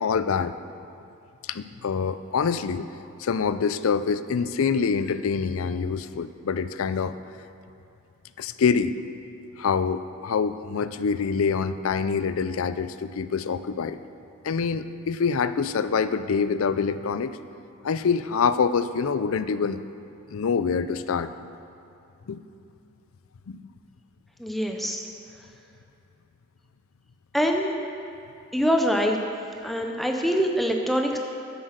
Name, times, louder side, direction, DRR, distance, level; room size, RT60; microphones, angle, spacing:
voice 1, 0.0-0.5 1.4-2.9 3.2-7.2 8.4-9.0 9.6-14.0 14.4-17.4 17.8-19.8 20.3-21.3 22.3-22.4 23.5-23.6, left 5 dB, 70° left, 13 dB, 0.4 m, -25 dB
voice 2, 24.4-25.1 27.3-27.7 28.5-29.2 29.6-31.2, equal, ahead, 1 dB, 0.5 m, -24 dB
10.5 x 7.9 x 6.5 m, 2.7 s
head